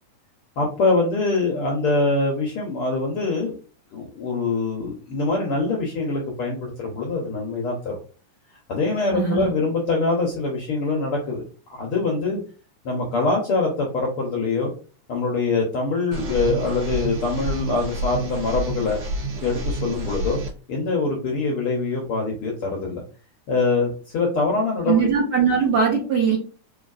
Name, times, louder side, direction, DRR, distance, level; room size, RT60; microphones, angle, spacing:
voice 1, 0.6-3.6 3.9-7.9 8.7-11.4 11.7-12.4 12.8-14.7 15.1-19.0 19.4-20.4 20.7-23.0 23.5-25.0, left 3 dB, 70° left, -1 dB, 1.3 m, -24 dB
voice 2, 9.1-9.5 24.9-26.4, right 6 dB, 75° right, -4 dB, 0.9 m, -20 dB
sound 1, 16.1-20.5, right 2 dB, 55° right, 1.9 m, -29 dB
5.0 x 2.9 x 2.4 m, 0.38 s
omnidirectional pair, 3.5 m